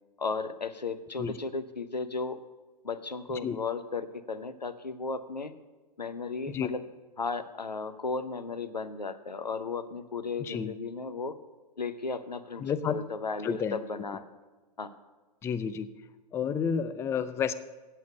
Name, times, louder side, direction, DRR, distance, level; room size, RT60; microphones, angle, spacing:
voice 1, 0.2-2.4 2.8-5.5 6.0-6.8 7.2-11.3 11.8-14.2 14.8-14.9, left 4 dB, 90° left, 11 dB, 0.8 m, -35 dB
voice 2, 10.4-10.7 12.6-13.0 13.4-13.8 15.4-15.9 16.3-17.5, left 7 dB, 10° left, 13 dB, 0.4 m, -30 dB
8.6 x 8.3 x 7.9 m, 1.2 s
figure-of-eight pair, 110°, 21 cm